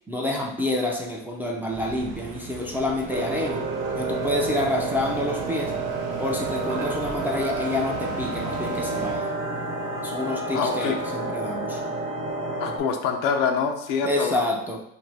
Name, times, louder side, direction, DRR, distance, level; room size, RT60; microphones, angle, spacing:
voice 1, 0.1-3.6 4.0-5.7 6.2-9.3 10.0-11.8 14.0-14.8, left 2 dB, 5° right, -2 dB, 0.4 m, -28 dB
sound 1, 1.7-9.2, right 6 dB, 85° right, 0.6 m, -38 dB
sound 2, 3.1-12.8, right 3 dB, 60° right, 0.9 m, -30 dB
voice 2, 10.5-11.0 12.6-14.4, left 6 dB, 65° left, 5 dB, 0.6 m, -25 dB
2.6 x 2.6 x 3.2 m, 0.76 s
supercardioid pair, 90°, 36 cm